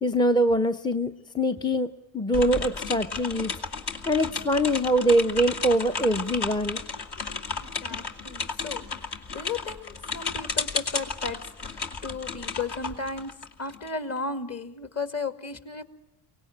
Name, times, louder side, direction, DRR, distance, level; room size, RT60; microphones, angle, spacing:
voice 1, 0.0-3.5 4.1-6.8, equal, 10° left, 9 dB, 0.7 m, -24 dB
sound 1, 2.3-13.9, left 4 dB, 50° left, 2.6 m, -33 dB
voice 2, 7.1-15.8, left 4 dB, 30° left, 10 dB, 2.1 m, -35 dB
23.5 x 18.5 x 8.9 m, 0.91 s
supercardioid pair, 70°, 49 cm